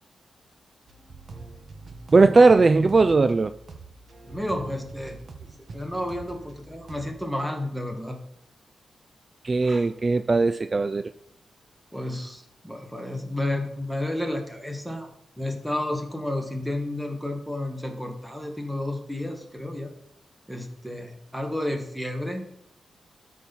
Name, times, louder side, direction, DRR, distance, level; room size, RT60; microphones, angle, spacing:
sound 1, 0.9-7.3, right 3 dB, 55° right, 1.4 m, -44 dB
voice 1, 2.1-3.5 9.4-11.1, right 3 dB, 35° right, 11 dB, 0.3 m, -18 dB
voice 2, 4.3-5.2 5.7-8.2 9.6-9.8 11.9-15.1 15.4-19.9 20.5-22.5, left 1 dB, 5° right, 4 dB, 1.6 m, -31 dB
13.0 x 4.4 x 5.4 m, 0.76 s
cardioid pair, 95°, 0 cm